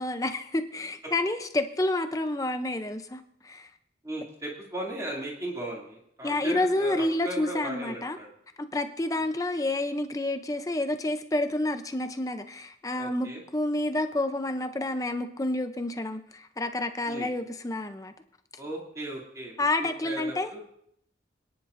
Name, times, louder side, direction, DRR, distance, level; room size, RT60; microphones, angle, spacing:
voice 1, 0.0-3.7 6.2-8.2 8.6-18.1 19.6-20.5, left 2 dB, 20° left, 8 dB, 0.5 m, -29 dB
voice 2, 4.0-8.3 13.0-13.4 17.1-17.3 18.6-19.7 20.0-20.6, right 1 dB, 15° right, -2 dB, 2.5 m, -37 dB
26.5 x 10.0 x 2.6 m, 0.71 s
head